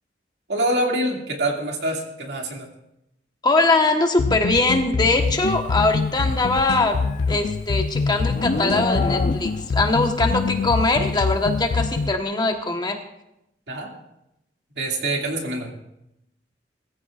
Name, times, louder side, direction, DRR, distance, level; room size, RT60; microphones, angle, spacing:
voice 1, 0.5-2.7 13.7-13.9 14.8-15.7, right 1 dB, 70° right, 0 dB, 2.4 m, -25 dB
voice 2, 3.4-7.0 7.3-13.0, left 2 dB, 25° left, 4 dB, 1.2 m, -21 dB
sound 1, 4.2-12.2, left 4 dB, 65° left, 0.4 m, -25 dB
Livestock farm animals working animals, 6.6-9.8, left 2 dB, 45° left, 0.9 m, -28 dB
21.5 x 14.5 x 2.5 m, 0.84 s
head